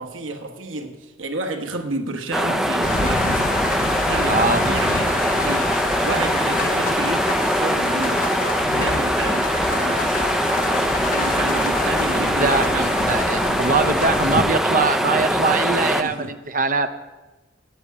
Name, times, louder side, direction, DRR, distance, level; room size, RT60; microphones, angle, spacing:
voice 1, 0.0-8.3 8.7-12.8 15.7-16.3, right 2 dB, 75° right, 4 dB, 1.2 m, -31 dB
sound 1, 2.3-16.0, equal, 5° right, 0.5 m, -22 dB
sound 2, 2.8-14.4, left 3 dB, 45° left, 0.8 m, -27 dB
voice 2, 4.3-4.8 12.1-17.0, right 4 dB, 40° right, 8 dB, 0.7 m, -22 dB
8.6 x 8.2 x 8.3 m, 1.1 s
head